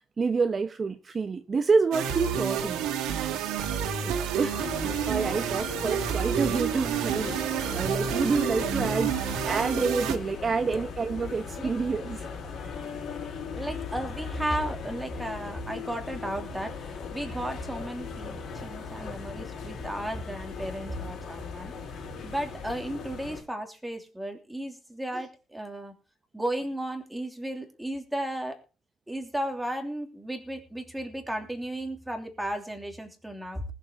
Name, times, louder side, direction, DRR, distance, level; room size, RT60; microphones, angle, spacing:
voice 1, 0.2-2.9 4.0-9.1 9.4-12.3 12.6-12.7 25.1-25.2, right 4 dB, 30° right, 1.0 m, -28 dB
sound 1, 1.9-10.2, right 8 dB, 90° right, 2.3 m, -29 dB
sound 2, 4.5-23.4, left 6 dB, 50° left, 4.9 m, -38 dB
voice 2, 10.5-10.8 11.5-11.7 13.5-21.7 22.2-25.9 26.3-28.6 29.1-33.6, right 1 dB, 5° right, 3.0 m, -34 dB
19.5 x 7.4 x 5.1 m
cardioid pair, 130°, 0 cm